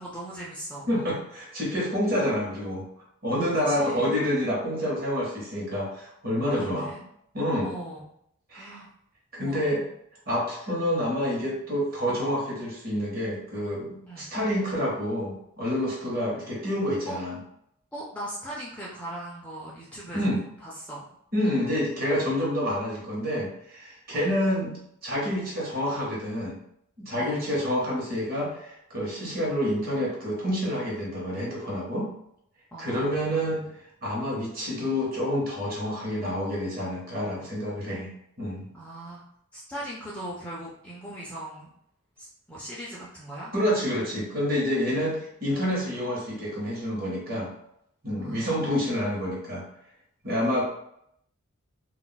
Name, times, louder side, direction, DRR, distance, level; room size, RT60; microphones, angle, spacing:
voice 1, 0.0-0.9 3.7-4.1 6.5-7.0 7.6-8.0 8.5-8.9 9.4-9.8 14.1-14.3 17.1-17.2 17.9-20.2 20.6-21.1 24.1-24.3 27.2-27.5 32.7-33.0 38.7-39.2 39.5-41.7 42.2-43.5 48.2-48.7, right 1 dB, 5° left, -5 dB, 0.4 m, -39 dB
voice 2, 0.9-2.9 3.2-6.9 7.3-7.7 8.5-8.8 9.3-9.8 10.3-17.4 20.1-20.4 21.3-26.6 27.0-32.1 32.8-33.7 34.0-38.1 38.4-38.7 43.5-47.5 48.0-49.6 50.2-50.7, equal, 40° right, -4 dB, 0.9 m, -28 dB
2.3 x 2.0 x 3.8 m, 0.73 s
head